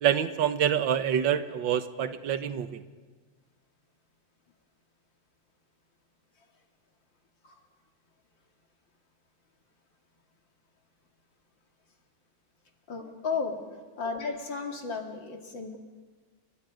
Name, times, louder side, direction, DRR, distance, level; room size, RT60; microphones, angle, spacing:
voice 1, 0.0-2.8, right 9 dB, 85° right, 10 dB, 1.8 m, -26 dB
voice 2, 12.9-15.8, left 4 dB, 80° left, 3 dB, 3.2 m, -34 dB
30.0 x 23.0 x 5.1 m, 1.4 s
omnidirectional pair, 2.0 m